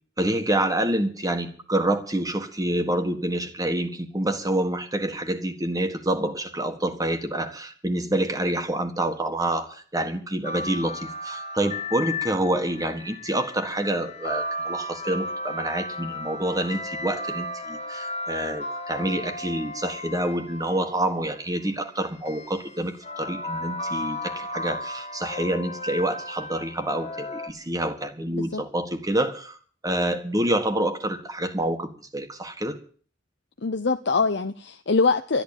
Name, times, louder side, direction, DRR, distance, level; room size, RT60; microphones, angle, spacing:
voice 1, 0.2-29.6 29.8-32.8, right 1 dB, 20° right, 1.7 m, -27 dB
sound 1, 10.4-21.3 22.2-27.5, left 1 dB, 35° left, 1.6 m, -34 dB
voice 2, 33.6-35.4, left 4 dB, 65° left, 0.8 m, -23 dB
13.0 x 11.0 x 8.9 m
head